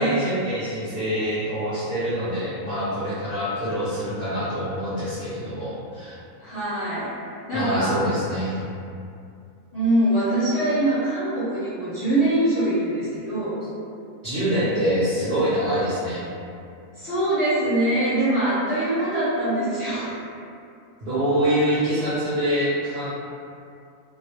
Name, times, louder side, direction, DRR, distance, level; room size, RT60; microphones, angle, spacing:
voice 1, 0.0-6.1 7.5-8.7 14.2-16.3 21.0-23.1, equal, 50° right, -13 dB, 0.7 m, -25 dB
voice 2, 6.4-7.1 7.5-8.0 9.7-13.6 17.0-20.2, right 1 dB, 15° left, -14 dB, 0.9 m, -23 dB
2.3 x 2.1 x 2.9 m, 2.5 s
omnidirectional pair, 1.4 m